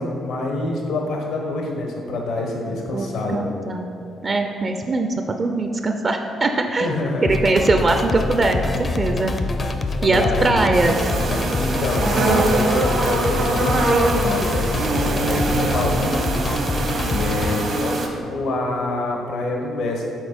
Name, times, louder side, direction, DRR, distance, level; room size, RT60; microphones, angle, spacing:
voice 1, 0.0-3.4 6.8-7.3 10.0-10.7 11.6-16.2 17.0-20.0, left 2 dB, 75° left, 1 dB, 0.9 m, -26 dB
voice 2, 2.9-3.9 4.2-6.9 7.4-9.3 10.0-11.0, right 2 dB, 35° right, 5 dB, 0.4 m, -21 dB
sound 1, 7.2-17.5, left 3 dB, 35° left, 0.5 m, -25 dB
sound 2, 10.7-18.1, right 2 dB, 60° right, 0.9 m, -23 dB
6.3 x 4.1 x 5.1 m, 2.6 s
cardioid pair, 90°, 0 cm